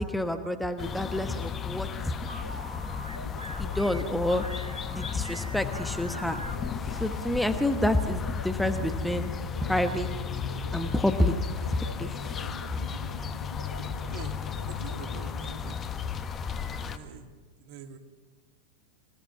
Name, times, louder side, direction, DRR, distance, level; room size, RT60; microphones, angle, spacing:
voice 1, 0.0-2.1 3.6-6.4 7.0-9.3 9.6-10.1 10.7-11.3 12.0-12.4 12.7-12.8, left 1 dB, ahead, 8 dB, 1.1 m, -28 dB
sound 1, 0.8-17.0, left 7 dB, 25° left, 1.2 m, -34 dB
sound 2, 2.3-15.6, right 2 dB, 85° right, 1.0 m, -44 dB
voice 2, 14.7-15.4 15.6-15.7 16.8-17.3 17.6-18.0, right 8 dB, 50° right, 6 dB, 1.8 m, -44 dB
27.0 x 17.0 x 6.0 m, 1.4 s
figure-of-eight pair, 90°, 0 cm